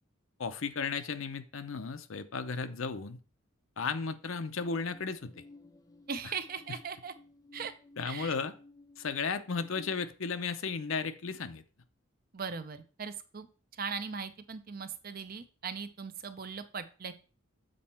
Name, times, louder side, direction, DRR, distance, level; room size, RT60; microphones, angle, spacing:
voice 1, 0.4-3.2 3.8-5.3 6.2-6.3 8.0-8.5 9.0-11.6, left 5 dB, 70° left, 10 dB, 0.7 m, -34 dB
sound 1, 4.5-10.1, left 2 dB, 15° left, 0.4 m, -55 dB
voice 2, 6.1-7.1 7.5-7.7 8.0-8.3 12.3-13.5 13.7-17.1, right 6 dB, 45° right, 11 dB, 0.5 m, -39 dB
7.6 x 4.3 x 4.3 m, 0.36 s
head